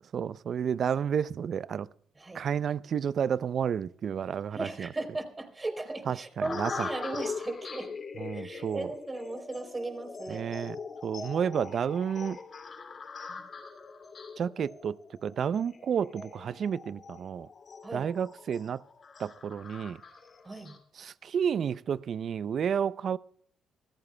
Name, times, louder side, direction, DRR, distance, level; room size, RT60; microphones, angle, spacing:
voice 1, 0.1-1.9 2.3-4.9 6.1-6.9 8.2-8.9 10.3-10.8 11.0-12.4 14.4-15.0 15.2-17.5 17.9-18.8 19.2-20.0 21.0-23.2, right 7 dB, 60° right, 0.5 m, -31 dB
voice 2, 4.5-7.9 8.3-10.5 13.3-13.4 17.8-18.1 20.4-20.8, right 2 dB, 25° right, 3.4 m, -37 dB
sound 1, 6.4-20.8, left 4 dB, 50° left, 2.7 m, -42 dB
25.0 x 14.5 x 2.2 m
supercardioid pair, 55°, 0 cm